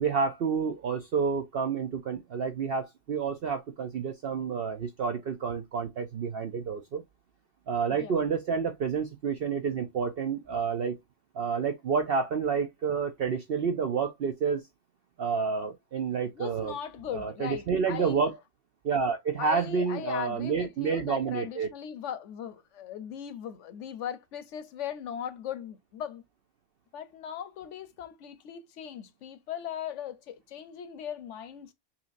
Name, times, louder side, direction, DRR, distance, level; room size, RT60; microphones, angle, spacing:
voice 1, 0.0-7.0 7.7-11.0 11.3-14.6 15.2-16.7 17.1-18.3 18.8-21.7, right 5 dB, 70° right, 0.5 m, -29 dB
voice 2, 16.3-18.1 19.4-26.2 26.9-31.7, left 9 dB, 60° left, 0.9 m, -39 dB
5.7 x 2.8 x 2.5 m
omnidirectional pair, 1.6 m